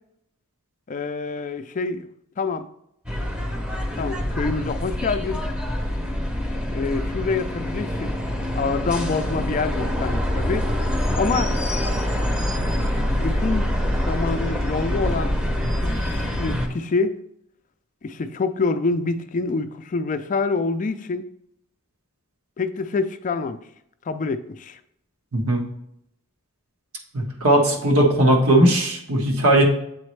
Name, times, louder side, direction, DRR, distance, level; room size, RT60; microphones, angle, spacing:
voice 1, 0.9-2.1 2.4-2.7 4.0-5.4 6.7-8.1 8.6-10.7 11.1-11.5 13.2-13.8 14.1-15.3 15.8-17.2 18.0-21.3 22.6-23.6 24.1-24.8, left 4 dB, 35° left, 0.4 m, -26 dB
sound 1, 3.1-16.7, left 1 dB, 5° right, 0.7 m, -25 dB
voice 2, 25.3-25.6 27.1-29.6, right 1 dB, 80° right, 1.4 m, -18 dB
7.8 x 4.1 x 3.2 m
head